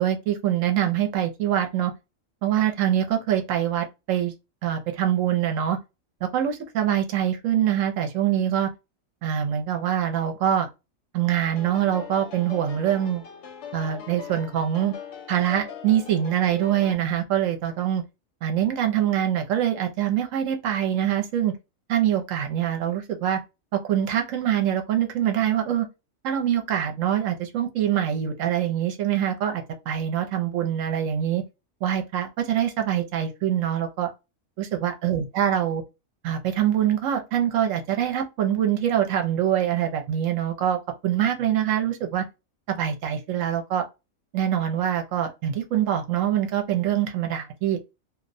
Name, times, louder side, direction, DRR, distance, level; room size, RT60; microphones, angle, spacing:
voice 1, 0.0-1.9 2.4-4.3 4.6-5.8 6.2-8.7 9.2-10.7 11.1-13.2 13.7-14.9 15.3-18.0 18.4-21.5 21.9-23.4 23.7-25.9 26.2-31.4 31.8-34.1 34.6-35.8 36.2-42.2 42.7-43.9 44.3-47.8, right 10 dB, 75° right, 1.0 m, -24 dB
sound 1, 11.5-17.0, left 7 dB, 70° left, 0.9 m, -41 dB
2.4 x 2.1 x 2.5 m
omnidirectional pair, 1.4 m